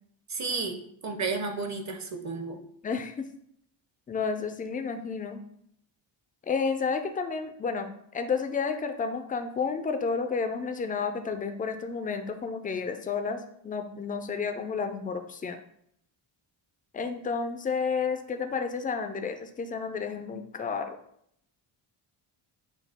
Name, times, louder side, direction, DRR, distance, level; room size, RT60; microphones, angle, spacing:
voice 1, 0.3-0.8 1.0-2.6, right 4 dB, 35° right, 5 dB, 0.7 m, -32 dB
voice 2, 2.8-3.3 4.1-5.4 6.5-15.6 16.9-21.0, left 5 dB, 20° left, 7 dB, 0.3 m, -31 dB
6.1 x 2.3 x 3.5 m, 0.70 s
cardioid pair, 100°, 49 cm